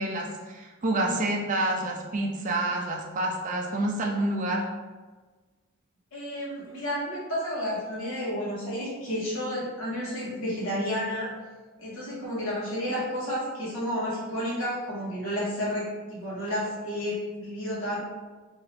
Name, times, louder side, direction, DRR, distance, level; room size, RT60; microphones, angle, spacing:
voice 1, 0.0-4.6, right 1 dB, 35° right, 0 dB, 0.4 m, -28 dB
voice 2, 6.1-11.3 11.8-18.0, equal, 85° left, -8 dB, 1.3 m, -31 dB
2.8 x 2.6 x 3.3 m, 1.3 s
head